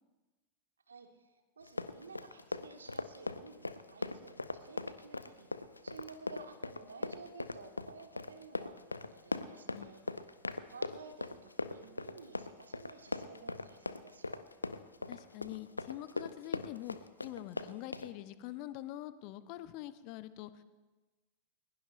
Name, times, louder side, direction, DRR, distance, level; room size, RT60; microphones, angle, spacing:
voice 1, 0.9-10.3 10.7-14.5, right 4 dB, 70° right, 6 dB, 1.5 m, -53 dB
Run, 1.6-18.1, left 3 dB, 80° left, 0.6 m, -40 dB
voice 2, 15.1-17.0 17.2-20.6, left 14 dB, 45° left, 14 dB, 0.8 m, -45 dB
21.5 x 20.5 x 2.6 m, 1.2 s
figure-of-eight pair, 90°, 0 cm